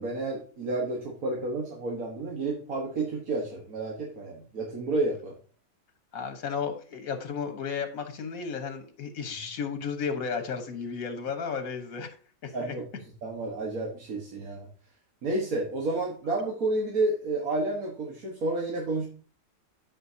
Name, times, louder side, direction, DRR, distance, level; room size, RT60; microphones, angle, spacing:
voice 1, 0.0-5.3 9.3-9.4 12.5-12.9 13.2-14.7 15.2-19.0, right 2 dB, 80° right, -2 dB, 2.0 m, -30 dB
voice 2, 6.1-12.1 12.4-12.7, left 6 dB, 80° left, 7 dB, 1.7 m, -33 dB
13.5 x 5.5 x 2.8 m, 0.40 s
omnidirectional pair, 1.5 m